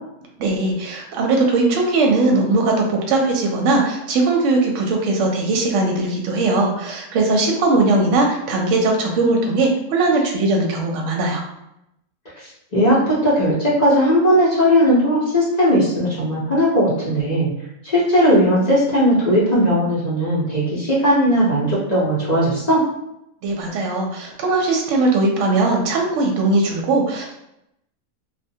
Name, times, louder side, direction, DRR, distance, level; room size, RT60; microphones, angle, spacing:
voice 1, 0.4-11.4 23.4-27.3, right 2 dB, 70° right, 1 dB, 0.8 m, -19 dB
voice 2, 12.3-17.5 17.8-22.8, equal, 45° left, -8 dB, 0.5 m, -17 dB
2.3 x 2.1 x 2.6 m, 0.82 s
omnidirectional pair, 1.5 m